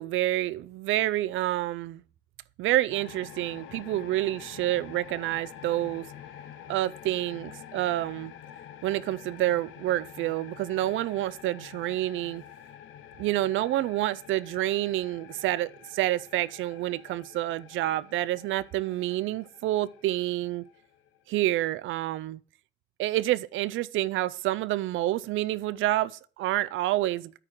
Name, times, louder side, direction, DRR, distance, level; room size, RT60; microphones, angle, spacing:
voice 1, 0.0-2.0 2.6-6.1 6.7-8.3 8.8-12.4 13.2-20.6 21.3-22.4 23.0-27.4, right 15 dB, 80° right, 0.4 m, -28 dB
sound 1, 2.9-21.2, left 10 dB, 80° left, 0.8 m, -48 dB
9.1 x 3.7 x 6.1 m
cardioid pair, 90°, 20 cm